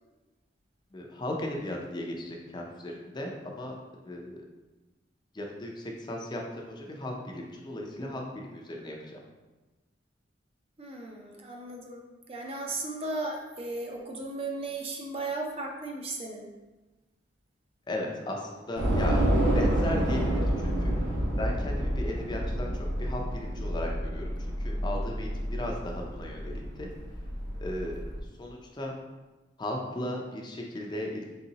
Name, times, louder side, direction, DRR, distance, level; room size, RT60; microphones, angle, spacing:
voice 1, 0.9-3.7 4.1-4.4 5.3-9.2 17.9-19.2 19.5-20.9 21.4-22.7 23.0-26.9 27.6-28.0 28.4-28.9 29.6-31.3, left 1 dB, 25° left, 0 dB, 0.5 m, -36 dB
voice 2, 10.8-16.5, right 2 dB, 30° right, 1 dB, 0.5 m, -36 dB
Train / Subway metro underground, 18.8-28.2, equal, 70° right, 1.0 m, -29 dB
4.0 x 3.7 x 2.8 m, 1.2 s
head